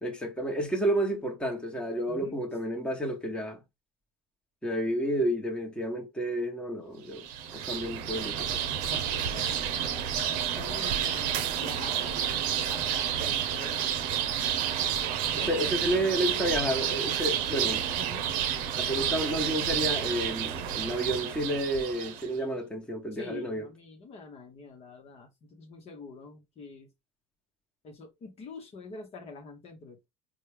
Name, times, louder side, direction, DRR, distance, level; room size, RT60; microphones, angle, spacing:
voice 1, 0.0-3.6 4.6-7.2 7.5-8.6 15.3-17.8 18.7-23.7, right 1 dB, 5° left, 1.2 m, -30 dB
sound 1, 7.1-22.3, right 9 dB, 55° right, 0.7 m, -30 dB
voice 2, 8.8-9.7 10.3-14.0 15.3-15.7 18.0-18.3 23.1-26.9 27.8-30.1, left 3 dB, 40° left, 1.1 m, -45 dB
4.3 x 2.3 x 3.4 m
hypercardioid pair, 85°, 16 cm